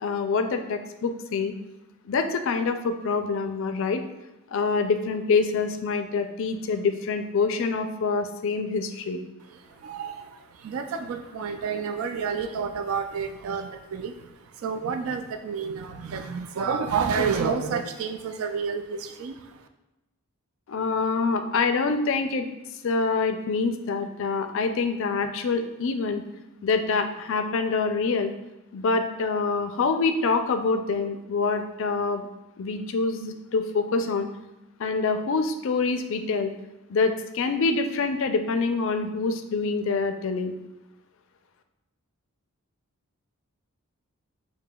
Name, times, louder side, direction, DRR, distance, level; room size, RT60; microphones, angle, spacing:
voice 1, 0.0-1.5 2.1-4.0 4.5-9.2 20.7-22.5 22.8-26.2 26.6-28.3 28.7-32.3 32.6-34.3 34.8-36.5 36.9-40.6, left 4 dB, 60° left, 7 dB, 0.4 m, -26 dB
voice 2, 9.5-19.7, right 6 dB, 65° right, 7 dB, 0.3 m, -30 dB
6.7 x 2.7 x 2.2 m, 0.98 s
head